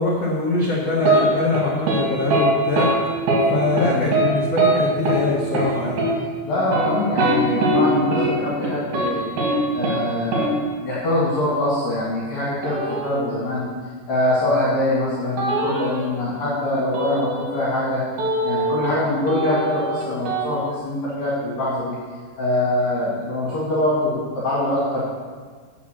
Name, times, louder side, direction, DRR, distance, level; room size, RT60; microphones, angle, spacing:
voice 1, 0.0-2.9 3.5-6.1, left 3 dB, 90° left, -4 dB, 1.4 m, -23 dB
sound 1, 1.0-1.2 1.5-2.0 2.3-2.5 2.8-2.9 3.3-3.5 3.8-4.3 4.6-4.7 5.1-5.2 5.5-5.7 6.0-6.1 6.6-7.8 8.1-8.3 8.6-9.1 9.4-9.5 9.8-10.0 10.3-10.5 12.6-13.4 15.4-16.1 16.9-17.8 18.2-19.0 19.3-20.5, right 2 dB, 60° right, 3.7 m, -22 dB
voice 2, 6.5-9.3 9.7-10.5 10.8-13.7 14.1-18.0 18.4-22.0 22.4-25.0, left 1 dB, 60° left, -8 dB, 3.5 m, -23 dB
8.6 x 7.0 x 6.4 m, 1.5 s
omnidirectional pair, 5.0 m